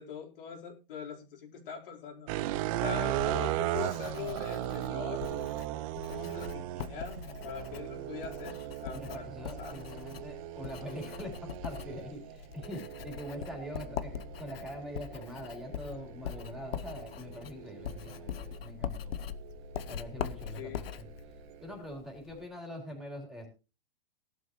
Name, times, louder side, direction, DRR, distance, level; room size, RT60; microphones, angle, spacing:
voice 1, 0.0-2.3 2.8-5.5 6.1-9.2 9.6-9.8 20.6-20.9, left 6 dB, 70° left, -1 dB, 4.4 m, -42 dB
sound 1, 2.3-18.6 19.2-21.7, right 15 dB, 35° right, 0.7 m, -38 dB
Writing, 2.9-22.5, left 8 dB, 85° left, 1.1 m, -42 dB
voice 2, 8.9-19.1 19.9-21.1 21.6-23.5, equal, ahead, 1 dB, 4.0 m, -43 dB
17.5 x 11.5 x 3.1 m, 0.32 s
supercardioid pair, 155°, 29 cm